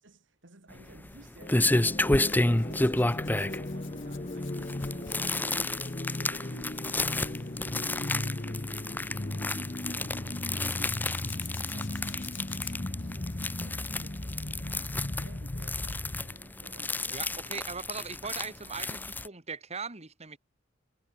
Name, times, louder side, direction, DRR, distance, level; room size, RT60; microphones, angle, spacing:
voice 1, 0.0-17.9 18.2-18.4 18.8-19.0, right 2 dB, 70° right, 2.5 m, -55 dB
sound 1, 0.7-19.3, left 2 dB, 10° left, 0.6 m, -31 dB
sound 2, 1.4-16.4, left 1 dB, 35° left, 1.0 m, -37 dB
Zipper (clothing), 2.2-9.6 10.6-14.2 14.6-14.9 17.3-17.4 17.7-17.8, left 14 dB, 80° left, 5.7 m, -56 dB
voice 2, 17.1-19.0 19.2-20.4, right 5 dB, 35° right, 2.4 m, -39 dB
head